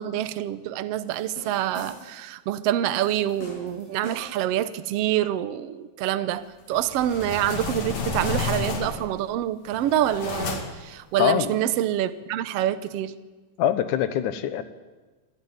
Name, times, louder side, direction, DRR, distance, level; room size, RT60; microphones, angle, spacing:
voice 1, 0.0-13.2, right 12 dB, 85° right, 12 dB, 1.4 m, -26 dB
sound 1, 1.1-2.3 2.9-4.5, left 1 dB, 90° left, 7.8 m, -43 dB
sound 2, 6.7-9.2 9.7-10.9, left 4 dB, 55° left, 3.2 m, -31 dB
voice 2, 11.2-11.5 13.6-14.6, left 10 dB, 70° left, 11 dB, 2.5 m, -23 dB
25.5 x 13.5 x 9.7 m, 1.3 s
omnidirectional pair, 4.0 m